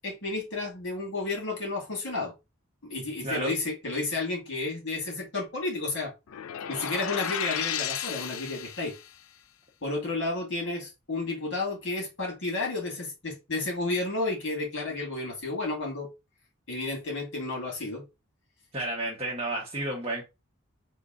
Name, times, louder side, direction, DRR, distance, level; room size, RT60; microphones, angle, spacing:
voice 1, 0.0-2.3 2.8-6.1 6.7-8.9 9.8-16.1 16.7-18.0, left 2 dB, 60° left, 2.2 m, -32 dB
voice 2, 3.2-3.5 18.7-20.2, right 1 dB, 30° right, 1.0 m, -31 dB
sound 1, 6.3-9.1, left 9 dB, 90° left, 0.4 m, -34 dB
3.7 x 2.7 x 3.7 m
head